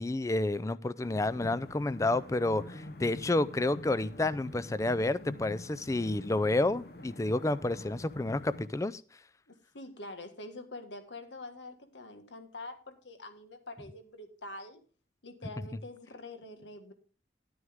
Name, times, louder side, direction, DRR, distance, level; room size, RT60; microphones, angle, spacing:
voice 1, 0.0-9.0, left 2 dB, 15° left, 16 dB, 0.4 m, -30 dB
sound 1, 1.0-8.7, left 1 dB, 60° left, 0.9 m, -46 dB
voice 2, 9.5-14.8 15.2-16.9, left 2 dB, 90° left, 7 dB, 1.6 m, -45 dB
11.0 x 9.5 x 3.6 m, 0.37 s
head